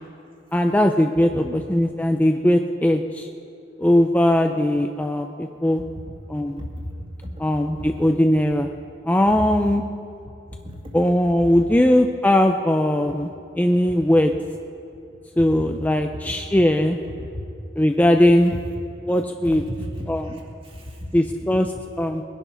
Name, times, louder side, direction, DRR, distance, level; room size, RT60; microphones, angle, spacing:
voice 1, 0.5-3.3 3.8-5.8 6.3-6.6 7.4-8.7 9.1-9.8 10.9-13.3 13.6-14.3 15.4-17.0 17.8-18.5 19.1-19.6 20.1-20.4 21.1-22.2, left 1 dB, 10° left, 4 dB, 0.4 m, -19 dB
voice 2, 6.6-6.9 7.2-7.3 7.7-8.0 9.3-9.4 10.6-10.9 11.3-11.4 17.2-17.3 19.5-21.0, equal, 30° right, 0 dB, 2.1 m, -35 dB
21.0 x 11.0 x 5.7 m, 2.6 s
head